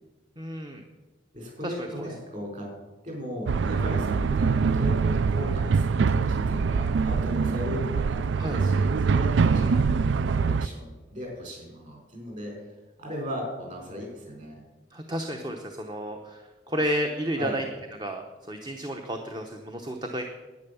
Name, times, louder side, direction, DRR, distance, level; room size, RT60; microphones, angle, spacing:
voice 1, 0.4-0.8 1.6-2.1 8.3-8.6 9.4-9.7 14.9-17.6 18.0-20.2, equal, 25° right, 4 dB, 0.8 m, -32 dB
voice 2, 1.3-2.7 3.0-12.5 13.0-14.6 17.4-17.7, equal, 40° right, 0 dB, 4.9 m, -37 dB
sound 1, 3.5-10.7, right 5 dB, 70° right, 0.4 m, -24 dB
10.5 x 9.5 x 6.9 m, 1.2 s
head